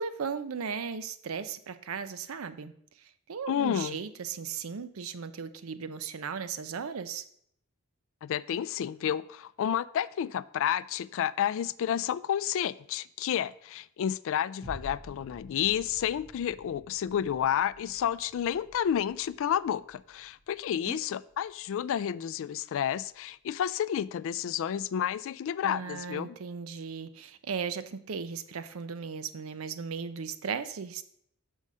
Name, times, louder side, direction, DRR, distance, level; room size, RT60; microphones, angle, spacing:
voice 1, 0.0-2.7 3.3-7.2 20.9-21.0 25.6-31.0, right 6 dB, 70° right, 0.5 m, -36 dB
voice 2, 3.5-4.0 8.2-26.4, left 9 dB, 65° left, 0.3 m, -30 dB
sound 1, 14.6-23.2 23.7-23.8, equal, 30° right, 2.6 m, -51 dB
6.6 x 5.4 x 4.8 m
head